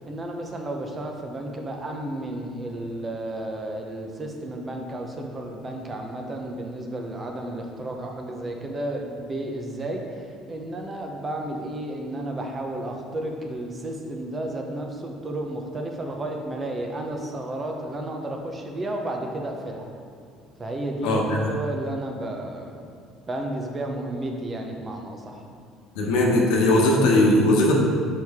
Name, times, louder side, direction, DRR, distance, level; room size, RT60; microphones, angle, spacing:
voice 1, 0.1-19.9 20.6-22.8 23.3-25.5, right 1 dB, 25° right, 2 dB, 0.7 m, -32 dB
voice 2, 21.0-21.4 26.0-27.7, left 1 dB, 80° left, -1 dB, 1.0 m, -19 dB
6.3 x 4.6 x 3.6 m, 2.2 s
cardioid pair, 135°, 0 cm